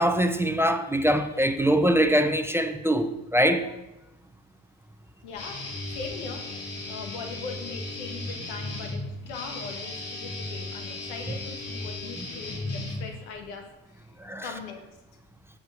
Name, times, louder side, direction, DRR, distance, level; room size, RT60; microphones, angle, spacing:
voice 1, 0.0-3.7 14.2-14.5, equal, 5° right, 8 dB, 0.7 m, -23 dB
voice 2, 5.2-5.7 5.9-6.5 6.8-13.7 14.4-14.9, left 4 dB, 85° left, 5 dB, 1.5 m, -40 dB
Guitar, 5.4-13.4, left 2 dB, 40° left, 2.5 m, -36 dB
7.9 x 4.9 x 6.3 m, 0.95 s
supercardioid pair, 75°, 36 cm